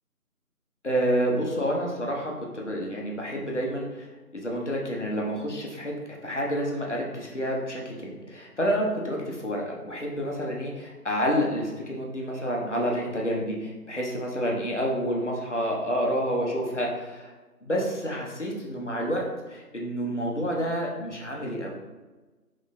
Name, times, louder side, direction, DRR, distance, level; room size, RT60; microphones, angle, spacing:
voice 1, 0.8-4.1 4.3-6.0 6.2-17.3 17.6-21.7, equal, 50° left, -1 dB, 0.6 m, -29 dB
3.7 x 3.1 x 2.5 m, 1.2 s
figure-of-eight pair, 170°, 46 cm